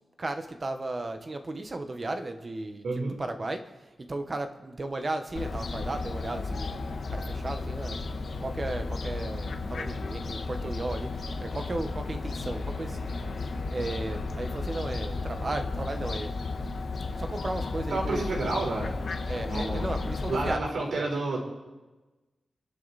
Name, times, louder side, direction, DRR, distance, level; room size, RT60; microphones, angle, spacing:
voice 1, 0.2-2.8 3.2-3.6 4.1-6.7 7.1-8.0 8.4-13.3 13.7-16.3 17.2-18.5 19.3-21.1, right 2 dB, 30° right, 6 dB, 1.2 m, -35 dB
voice 2, 2.8-3.2 17.9-18.9 19.5-19.9 20.3-21.4, right 2 dB, 75° right, 0 dB, 4.3 m, -30 dB
Fowl, 5.4-20.5, left 3 dB, 60° left, 1.3 m, -33 dB
28.5 x 10.5 x 4.2 m, 1.2 s
wide cardioid pair, 155°, 0 cm